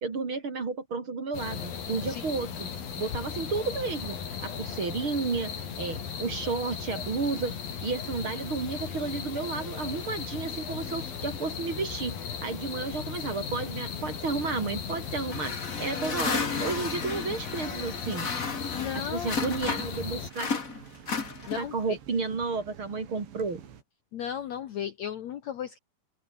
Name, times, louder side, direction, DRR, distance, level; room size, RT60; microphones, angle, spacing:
voice 1, 0.0-2.7 3.0-5.5 5.8-7.5 7.8-12.1 12.4-15.5 15.8-18.3 18.9-20.5 21.6-23.6, right 4 dB, 30° right, 3.3 m, -32 dB
sound 1, 1.3-20.3, left 7 dB, 55° left, 5.3 m, -37 dB
sound 2, 15.0-23.8, right 8 dB, 80° right, 5.6 m, -50 dB
sound 3, 15.3-20.0 20.3-21.8, left 5 dB, 35° left, 1.3 m, -33 dB
voice 2, 18.7-19.4 21.5-21.7 24.1-25.8, left 9 dB, 90° left, 1.5 m, -35 dB
open air
omnidirectional pair, 5.0 m